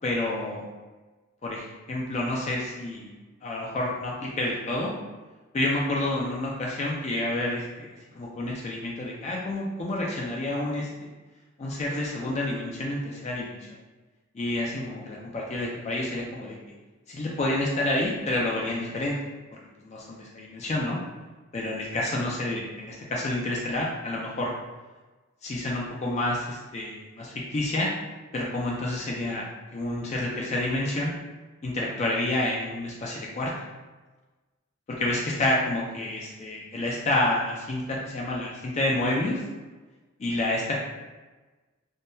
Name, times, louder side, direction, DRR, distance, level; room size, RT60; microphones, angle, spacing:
voice 1, 0.0-0.6 1.4-3.1 3.4-4.9 5.5-7.9 8.1-10.9 11.6-13.5 14.3-16.5 17.1-19.2 19.8-21.0 21.5-24.5 25.4-27.9 28.3-29.4 29.7-31.1 31.6-33.7 34.9-39.4 40.2-40.8, left 1 dB, 30° left, -3 dB, 0.3 m, -29 dB
3.5 x 2.1 x 2.6 m, 1.2 s
head